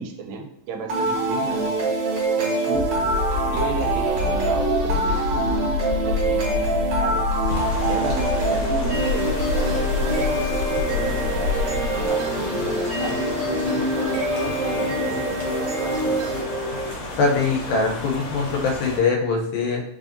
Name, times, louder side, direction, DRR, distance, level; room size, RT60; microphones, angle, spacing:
voice 1, 0.0-1.9 2.4-2.9 3.5-7.2 7.9-13.2 13.6-16.2, right 5 dB, 85° right, 3 dB, 2.3 m, -34 dB
sound 1, 0.9-16.9, right 2 dB, 65° right, 1.4 m, -25 dB
sound 2, 2.7-12.1, left 5 dB, 45° left, 2.0 m, -27 dB
sound 3, 7.5-19.0, left 1 dB, 65° left, 1.5 m, -33 dB
voice 2, 17.2-19.8, left 4 dB, 85° left, 1 dB, 2.5 m, -22 dB
5.4 x 2.6 x 2.5 m, 0.78 s
omnidirectional pair, 4.1 m